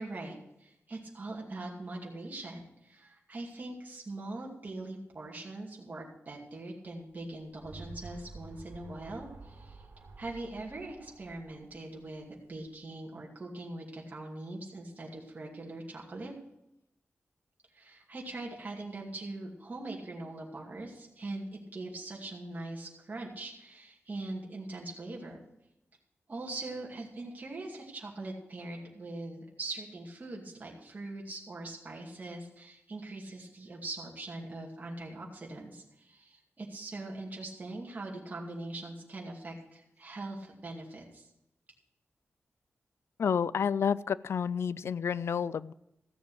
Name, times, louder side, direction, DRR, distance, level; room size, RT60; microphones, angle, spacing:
voice 1, 0.0-9.9 10.2-16.3 17.7-25.4 26.3-41.3, right 2 dB, 35° right, -2 dB, 2.4 m, -42 dB
sound 1, 7.1-12.7, right 3 dB, 70° right, 2.5 m, -50 dB
voice 2, 43.2-45.7, left 7 dB, 75° left, 19 dB, 0.4 m, -30 dB
15.0 x 7.2 x 6.4 m, 0.85 s
wide cardioid pair, 115°, 4 cm